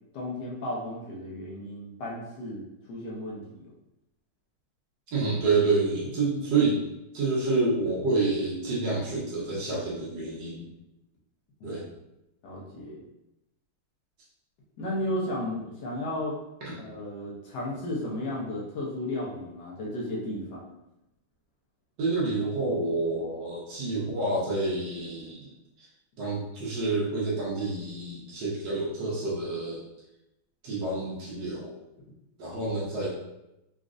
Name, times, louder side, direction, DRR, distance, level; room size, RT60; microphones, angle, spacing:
voice 1, 0.1-3.7 11.6-11.8 12.4-13.0 14.8-16.3 16.8-20.7, left 1 dB, 65° left, -4 dB, 1.2 m, -34 dB
voice 2, 5.1-6.8 7.1-10.7 11.6-11.9 16.6-16.8 22.0-25.5 25.8-25.9 26.2-29.8 30.6-31.7 32.4-33.1, right 3 dB, 65° right, -5 dB, 1.5 m, -28 dB
4.1 x 2.4 x 2.5 m, 0.89 s
omnidirectional pair, 2.1 m